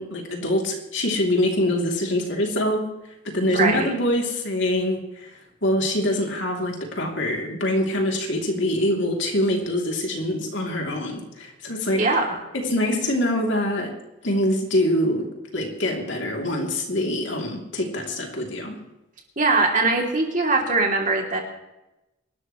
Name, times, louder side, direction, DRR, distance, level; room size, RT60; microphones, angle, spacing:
voice 1, 0.0-2.9 3.2-5.3 5.6-12.1 12.5-13.9 14.2-18.8, left 1 dB, 60° left, 1 dB, 3.1 m, -24 dB
voice 2, 3.4-3.9 11.9-12.3 19.4-21.4, right 3 dB, 40° right, 0 dB, 3.1 m, -21 dB
25.5 x 13.0 x 3.2 m, 0.94 s
head